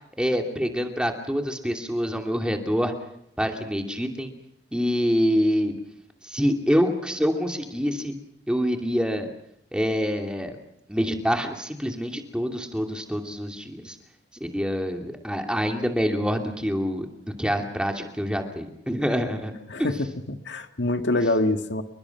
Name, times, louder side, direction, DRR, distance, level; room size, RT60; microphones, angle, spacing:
voice 1, 0.2-2.9 3.4-4.3 4.7-5.7 6.2-8.1 8.5-9.3 9.7-10.6 10.9-13.9 14.4-17.1 17.4-19.5, equal, 5° right, 3 dB, 2.7 m, -26 dB
voice 2, 19.7-21.8, left 2 dB, 75° left, 7 dB, 2.0 m, -25 dB
29.5 x 24.0 x 6.0 m, 0.75 s
head